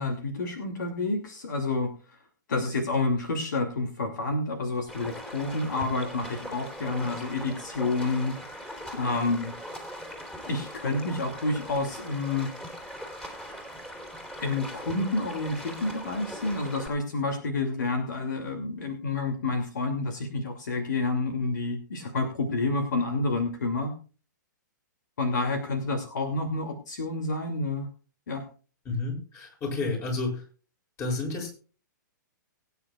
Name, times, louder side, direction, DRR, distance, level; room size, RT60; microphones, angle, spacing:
voice 1, 0.0-2.2 2.5-9.5 10.5-12.5 14.4-23.9 25.2-27.9 28.3-28.4, left 3 dB, 70° left, 5 dB, 2.7 m, -29 dB
Stream, 4.9-16.9, equal, 5° left, 3.6 m, -40 dB
voice 2, 28.9-30.4 31.0-31.5, left 3 dB, 25° left, 2 dB, 7.6 m, -30 dB
22.5 x 9.7 x 2.4 m, 0.36 s
hypercardioid pair, 120°, 10 cm